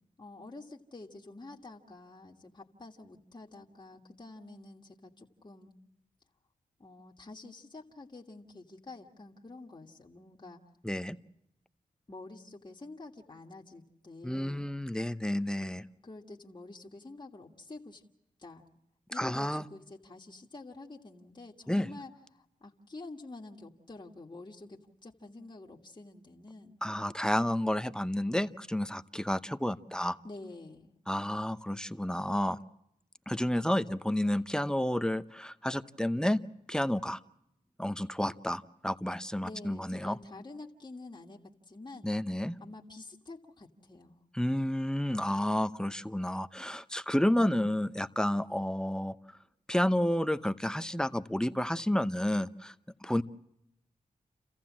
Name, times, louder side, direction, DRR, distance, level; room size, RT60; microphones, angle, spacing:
voice 1, 0.2-5.7 6.8-10.6 12.1-14.7 16.0-18.0 18.4-18.6 19.1-26.8 30.2-30.9 39.4-42.1 42.6-44.2, left 2 dB, 30° left, -1 dB, 1.8 m, -48 dB
voice 2, 10.8-11.2 14.2-15.9 19.2-19.7 21.7-21.9 26.8-30.2 31.1-32.6 33.3-36.4 36.7-37.2 37.8-40.2 42.0-42.6 44.3-49.2 49.7-52.7 53.0-53.2, left 1 dB, 5° left, 12 dB, 0.7 m, -30 dB
29.0 x 15.0 x 7.4 m, 0.82 s
cardioid pair, 55°, 15 cm